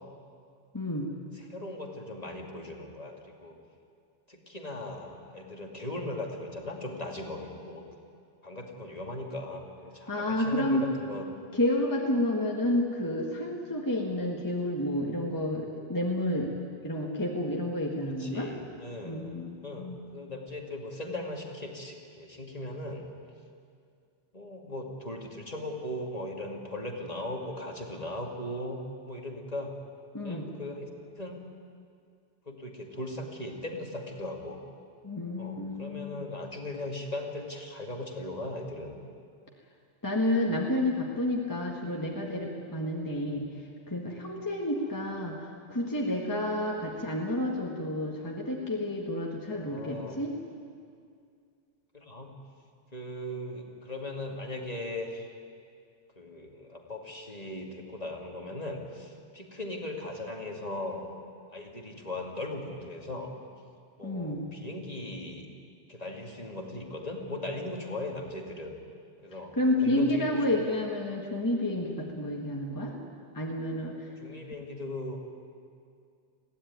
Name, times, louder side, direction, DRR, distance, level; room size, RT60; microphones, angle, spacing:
voice 1, 0.7-1.1 10.1-10.8 11.5-16.5 16.8-18.5 19.0-20.0 30.1-30.5 35.0-36.2 40.0-43.4 43.9-50.3 64.0-64.5 69.6-73.0 73.3-74.1, left 1 dB, 15° left, -1 dB, 1.7 m, -30 dB
voice 2, 1.3-3.6 4.3-7.9 8.4-11.3 18.2-19.3 19.6-23.0 24.3-28.8 29.1-29.8 30.2-30.9 31.2-31.4 32.5-34.6 35.4-39.0 41.8-42.0 43.1-43.4 44.9-45.4 46.6-46.9 49.5-50.2 51.9-52.4 52.9-55.3 56.2-61.1 61.5-63.3 64.0-65.5 65.9-68.7 69.2-70.8 74.2-75.2, left 1 dB, 35° left, 1 dB, 2.3 m, -38 dB
21.5 x 16.0 x 9.5 m, 2.3 s
omnidirectional pair, 1.2 m